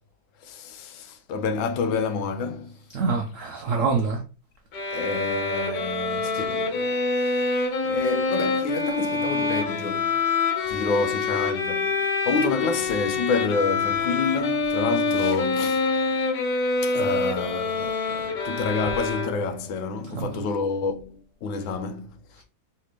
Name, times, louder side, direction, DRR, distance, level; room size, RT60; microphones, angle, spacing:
voice 1, 0.4-2.8 4.9-10.2 10.7-11.9 12.3-15.9 16.8-22.4, left 4 dB, 90° left, 1.4 m, -28 dB
voice 2, 2.9-4.2 10.6-10.8 20.1-20.4 22.4-22.5, right 4 dB, 85° right, 0.6 m, -26 dB
sound 1, 4.7-19.7, left 3 dB, 65° left, 1.6 m, -26 dB
4.1 x 3.3 x 3.0 m
omnidirectional pair, 2.1 m